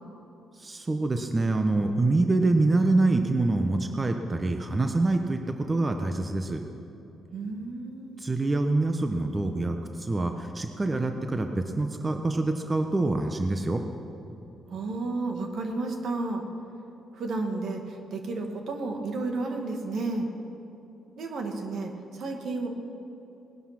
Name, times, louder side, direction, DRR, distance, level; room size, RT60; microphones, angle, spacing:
voice 1, 0.6-6.6 8.2-13.8, right 2 dB, 25° right, 5 dB, 1.0 m, -26 dB
voice 2, 7.3-8.2 14.7-16.5 17.1-20.3 21.2-22.7, right 3 dB, 70° right, 3 dB, 2.0 m, -32 dB
19.0 x 11.0 x 6.0 m, 2.9 s
cardioid pair, 80°, 0 cm